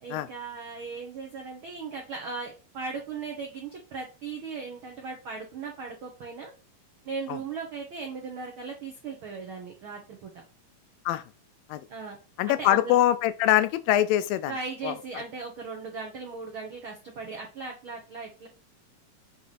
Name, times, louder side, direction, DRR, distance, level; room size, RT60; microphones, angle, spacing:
voice 1, 0.0-6.5 7.0-10.3 11.9-12.2 12.5-13.0 14.5-18.5, right 4 dB, 90° right, 1.1 m, -38 dB
voice 2, 12.4-14.5 14.8-14.9, left 13 dB, 85° left, 2.3 m, -23 dB
7.1 x 3.3 x 4.1 m
omnidirectional pair, 4.1 m